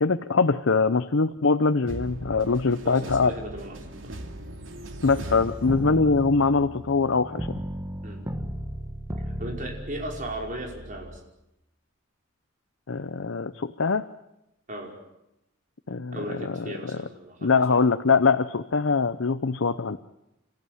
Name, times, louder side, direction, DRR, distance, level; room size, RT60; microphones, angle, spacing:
voice 1, 0.0-3.3 5.0-7.5 12.9-14.0 15.9-16.6 17.4-20.0, left 4 dB, 90° left, 10 dB, 0.8 m, -23 dB
sound 1, 1.9-6.3, right 1 dB, 85° right, 2.6 m, -39 dB
voice 2, 2.8-3.8 4.0-4.1 5.2-5.6 8.0-8.2 9.2-11.2 14.7-14.9 16.1-17.8, right 1 dB, 40° right, 1 dB, 5.3 m, -37 dB
sound 2, 5.7-11.2, equal, 15° right, 1.4 m, -35 dB
29.0 x 14.5 x 9.5 m, 0.88 s
head